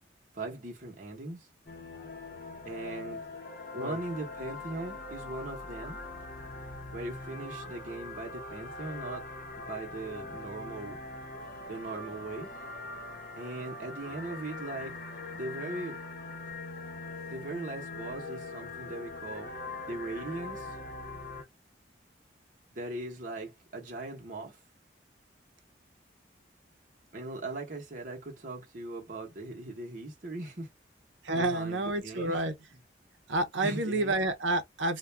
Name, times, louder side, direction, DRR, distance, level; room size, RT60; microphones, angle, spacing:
voice 1, 0.3-1.5 2.6-3.2 3.7-6.0 6.9-9.2 9.6-11.0 11.7-12.5 13.4-15.0 15.3-16.1 17.3-19.5 19.8-20.8 22.7-24.6 27.1-30.7 31.3-32.4 33.6-34.2, right 2 dB, 45° right, 0.9 m, -39 dB
sound 1, 1.7-21.4, left 2 dB, 50° left, 0.7 m, -42 dB
voice 2, 31.2-32.5 33.3-35.0, right 2 dB, 90° right, 0.6 m, -29 dB
2.4 x 2.1 x 3.2 m
head